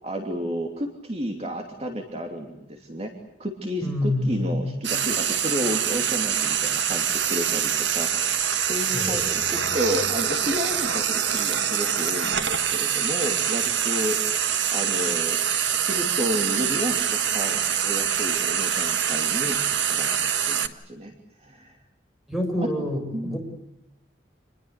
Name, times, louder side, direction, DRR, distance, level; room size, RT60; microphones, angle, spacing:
voice 1, 0.0-3.1 3.4-14.4 14.7-15.4 15.9-19.6 19.9-20.1 20.4-21.1 21.4-21.8 22.6-22.7 23.1-23.4, equal, 35° right, 3 dB, 2.9 m, -31 dB
voice 2, 3.8-4.9 8.9-9.7 22.3-23.4, left 1 dB, ahead, 3 dB, 6.7 m, -28 dB
Frying (food), 4.8-20.7, right 8 dB, 80° right, 1.6 m, -25 dB
28.5 x 21.0 x 8.2 m, 0.85 s
head